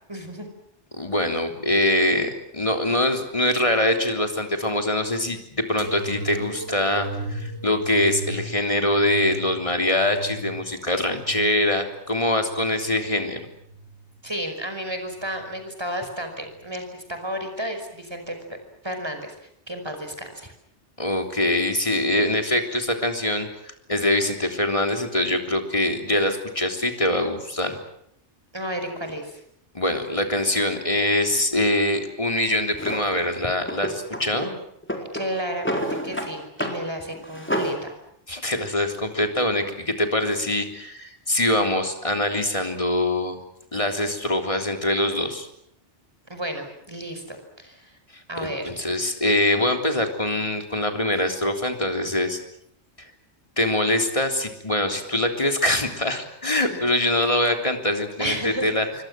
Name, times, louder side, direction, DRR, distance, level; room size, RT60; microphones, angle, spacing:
voice 1, 0.1-0.5 14.2-19.3 19.7-20.5 28.5-29.4 35.0-38.0 46.3-48.0 48.3-48.7 56.7-57.2 58.2-58.8, equal, 20° right, 6 dB, 5.4 m, -32 dB
voice 2, 0.9-13.5 21.0-27.8 29.7-34.5 38.3-43.4 43.7-45.5 48.1-52.4 53.0-53.1 53.6-58.9, left 1 dB, 30° left, 5 dB, 3.5 m, -24 dB
sound 1, 5.8-13.0 13.5-14.3 15.0-15.6 16.5-16.7, right 2 dB, 65° right, 2.0 m, -36 dB
Drawer open or close, 32.8-33.1 33.6-34.5 34.8-36.3 36.6-36.8 37.1-37.8, equal, 10° left, 4.1 m, -28 dB
27.5 x 24.5 x 7.7 m, 0.72 s
omnidirectional pair, 1.2 m